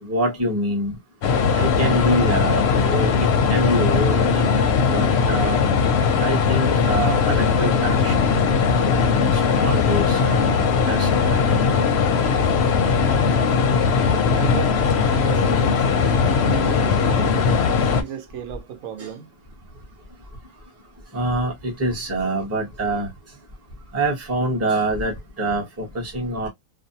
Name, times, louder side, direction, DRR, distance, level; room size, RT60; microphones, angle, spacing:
voice 1, 0.0-1.0 1.6-5.6 6.2-8.5 8.8-11.6 19.0-19.1 21.1-23.1 23.9-26.5, right 1 dB, 15° right, 0.7 m, -26 dB
sound 1, 1.2-18.0, left 5 dB, 65° left, 0.7 m, -19 dB
voice 2, 14.3-14.8 15.1-19.3, right 9 dB, 85° right, 1.0 m, -35 dB
2.6 x 2.0 x 2.6 m
omnidirectional pair, 1.4 m